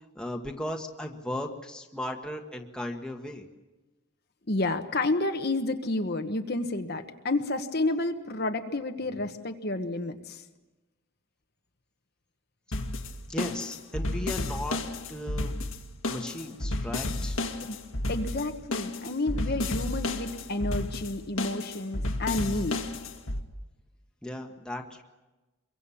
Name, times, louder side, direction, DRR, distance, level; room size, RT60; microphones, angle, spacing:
voice 1, 0.1-3.4 13.3-14.8 15.1-15.5 16.1-17.4 24.2-25.0, left 1 dB, 5° left, 2 dB, 1.4 m, -36 dB
voice 2, 4.5-10.4 17.6-17.8 18.1-22.8, left 2 dB, 50° left, 5 dB, 1.2 m, -30 dB
sound 1, 12.7-23.4, left 2 dB, 75° left, 2.0 m, -32 dB
25.5 x 23.0 x 7.1 m, 1.1 s
head